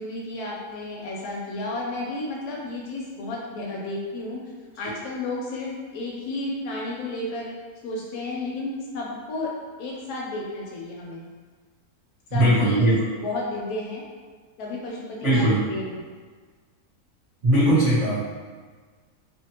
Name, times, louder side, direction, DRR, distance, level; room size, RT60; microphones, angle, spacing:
voice 1, 0.0-4.5 4.8-7.5 7.8-9.5 9.8-11.2 12.3-12.9 13.2-14.0 14.6-16.1, left 2 dB, 85° left, -3 dB, 1.1 m, -32 dB
voice 2, 12.3-13.0 15.2-15.6 17.4-18.2, right 1 dB, 25° right, -12 dB, 0.9 m, -19 dB
2.6 x 2.3 x 2.8 m, 1.5 s
omnidirectional pair, 1.6 m